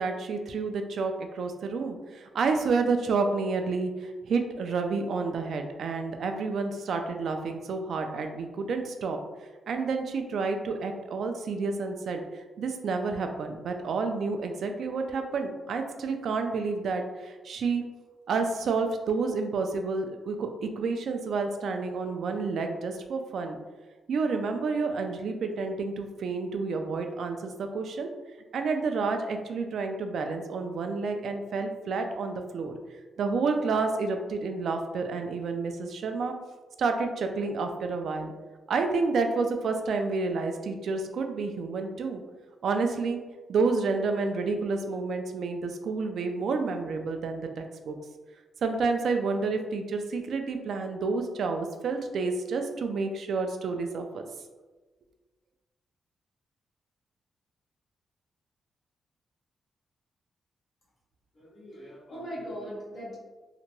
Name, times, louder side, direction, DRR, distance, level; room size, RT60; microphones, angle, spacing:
voice 1, 0.0-9.2 9.7-12.2 12.6-17.8 18.3-23.6 24.1-28.1 28.5-32.7 33.2-36.3 36.8-38.3 38.7-42.2 42.6-43.2 43.5-48.0 48.6-54.2, right 4 dB, 65° right, 5 dB, 0.3 m, -29 dB
voice 2, 61.3-63.2, equal, 40° left, -6 dB, 1.0 m, -40 dB
2.8 x 2.2 x 2.9 m, 1.2 s
wide cardioid pair, 160°, 0 cm